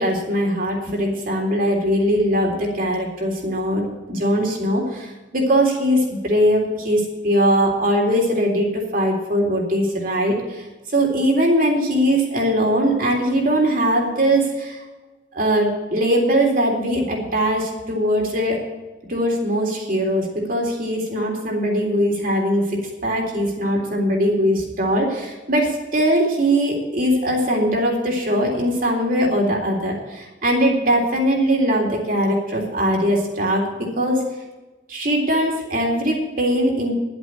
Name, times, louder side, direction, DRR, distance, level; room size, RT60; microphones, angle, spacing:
voice 1, 0.0-14.8 15.3-18.6 19.1-34.2 34.9-36.9, equal, 50° right, 0 dB, 3.6 m, -21 dB
11.5 x 8.0 x 8.3 m, 1.2 s
head